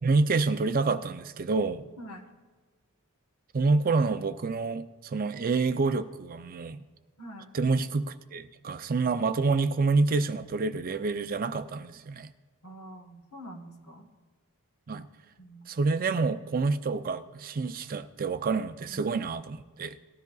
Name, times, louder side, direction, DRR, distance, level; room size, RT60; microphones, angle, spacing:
voice 1, 0.0-1.8 3.5-6.8 7.5-12.3 14.9-15.1 15.7-20.0, right 4 dB, 40° right, 10 dB, 0.4 m, -28 dB
voice 2, 2.0-2.3 7.2-7.5 12.6-14.1 15.4-15.8 18.8-19.0, equal, 75° left, 5 dB, 1.3 m, -45 dB
19.0 x 13.0 x 2.3 m, 1.3 s
head